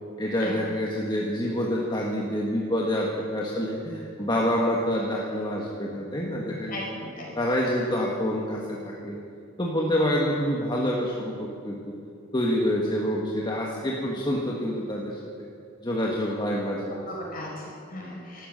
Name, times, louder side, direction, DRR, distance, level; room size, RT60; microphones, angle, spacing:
voice 1, 0.2-6.8 7.4-9.2 9.6-11.9 12.3-15.2 15.8-17.1, equal, 20° left, -2 dB, 1.4 m, -27 dB
voice 2, 6.7-7.3 17.1-18.5, left 1 dB, 45° left, -3 dB, 4.7 m, -37 dB
13.0 x 12.5 x 7.9 m, 2.5 s
head